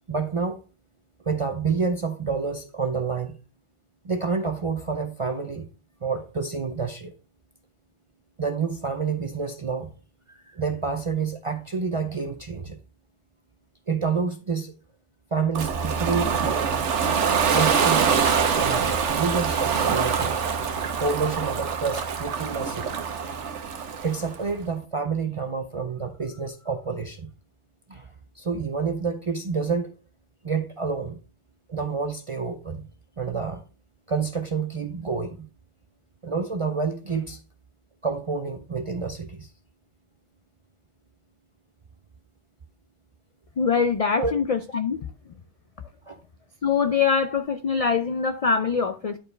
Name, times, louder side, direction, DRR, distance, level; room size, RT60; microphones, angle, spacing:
voice 1, 0.1-0.6 1.3-3.4 4.0-5.7 6.0-7.1 8.4-9.9 10.5-12.8 13.9-14.7 15.3-16.8 17.5-20.7 21.0-23.6 24.0-27.3 27.9-28.0 28.4-29.9 30.4-31.2 31.7-32.8 33.2-33.6 34.1-35.5 36.2-37.4 38.0-39.5 44.1-44.3 46.1-46.2, right 5 dB, 45° right, 0.4 m, -28 dB
Ocean, 15.5-24.4, right 6 dB, 85° right, 1.2 m, -24 dB
voice 2, 43.6-45.0 46.6-49.2, left 5 dB, 65° left, 0.3 m, -23 dB
10.0 x 4.5 x 3.2 m
omnidirectional pair, 1.2 m